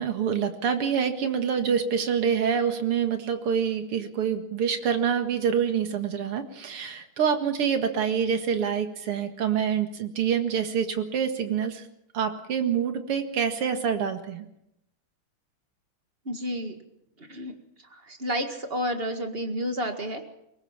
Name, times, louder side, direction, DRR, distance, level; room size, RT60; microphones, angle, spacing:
voice 1, 0.0-11.8 12.1-14.5, right 7 dB, 85° right, 7 dB, 2.7 m, -26 dB
voice 2, 16.3-16.8 17.3-17.5 17.9-20.2, equal, 25° right, 6 dB, 2.1 m, -30 dB
22.5 x 19.5 x 6.0 m, 0.80 s
omnidirectional pair, 2.4 m